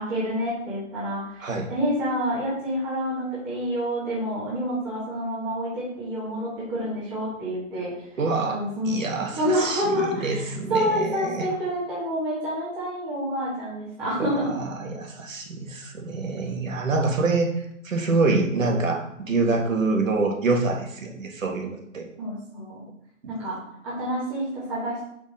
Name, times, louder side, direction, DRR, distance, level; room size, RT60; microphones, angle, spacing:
voice 1, 0.0-1.4 1.7-7.9 8.5-9.0 9.3-14.5 22.2-22.8 23.3-23.6 23.8-25.0, equal, 10° right, -10 dB, 1.3 m, -28 dB
voice 2, 1.4-1.7 8.2-11.5 14.2-22.1 23.2-23.3, right 3 dB, 80° right, 2 dB, 1.8 m, -26 dB
5.8 x 5.2 x 4.2 m, 0.74 s
hypercardioid pair, 170°, 39 cm